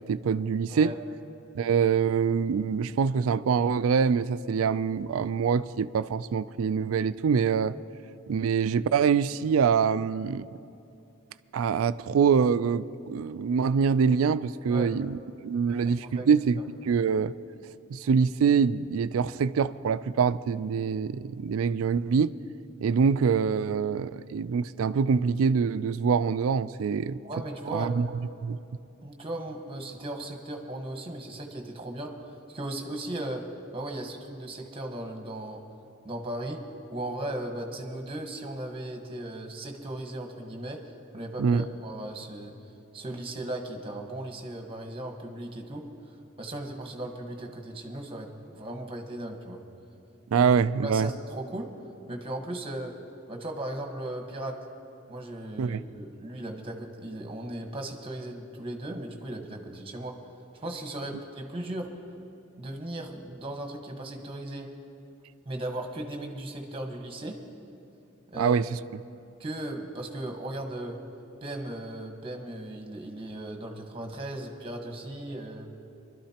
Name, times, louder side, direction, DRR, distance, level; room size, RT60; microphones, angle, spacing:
voice 1, 0.1-0.9 1.5-7.7 8.3-10.5 11.5-17.3 17.9-22.3 22.8-27.2 27.7-28.1 28.4-28.6 41.4-41.6 50.3-51.1 55.6-55.8 68.4-68.8, right 6 dB, 80° right, 15 dB, 0.4 m, -25 dB
voice 2, 15.7-16.3 27.2-28.0 29.0-32.1 32.5-33.4 33.7-35.6 36.0-36.6 36.9-40.8 41.1-42.5 42.9-45.8 46.4-49.6 50.3-50.5 50.8-51.7 52.1-52.9 53.3-54.6 55.1-60.1 60.5-61.9 62.6-64.7 65.4-67.4 68.3-68.6 69.4-71.0 71.4-75.7, right 1 dB, 25° right, 3 dB, 1.3 m, -37 dB
24.5 x 12.0 x 2.9 m, 2.7 s
head